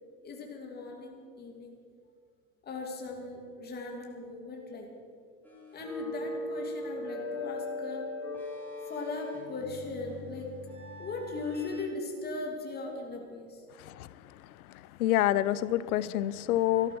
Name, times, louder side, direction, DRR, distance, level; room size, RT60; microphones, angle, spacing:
voice 1, 0.2-1.7 2.6-5.1 5.7-8.1 8.8-10.5 11.0-13.6, left 3 dB, 20° left, 0 dB, 2.6 m, -38 dB
sound 1, 5.4-11.8, left 2 dB, 5° left, 3.4 m, -40 dB
voice 2, 15.0-17.0, left 13 dB, 85° left, 17 dB, 0.7 m, -27 dB
13.5 x 13.5 x 6.2 m, 2.1 s
supercardioid pair, 130°, 43 cm